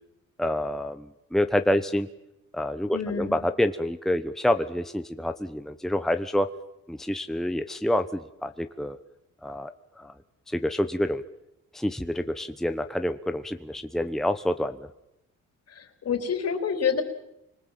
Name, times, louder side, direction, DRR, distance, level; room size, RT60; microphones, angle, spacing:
voice 1, 0.4-2.1 2.5-6.5 6.9-9.0 9.4-10.1 10.5-11.2 11.7-14.9, left 1 dB, ahead, 8 dB, 1.1 m, -27 dB
voice 2, 2.9-3.4 15.7-17.0, left 6 dB, 55° left, 6 dB, 4.2 m, -28 dB
30.0 x 25.0 x 7.6 m, 0.89 s
cardioid pair, 90°, 30 cm